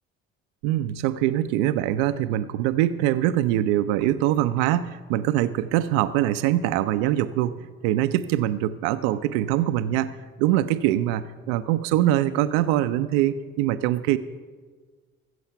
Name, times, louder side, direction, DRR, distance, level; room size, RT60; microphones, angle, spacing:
voice 1, 0.6-14.2, right 13 dB, 80° right, 12 dB, 0.4 m, -23 dB
14.0 x 7.9 x 5.7 m, 1.5 s
hypercardioid pair, 55°, 29 cm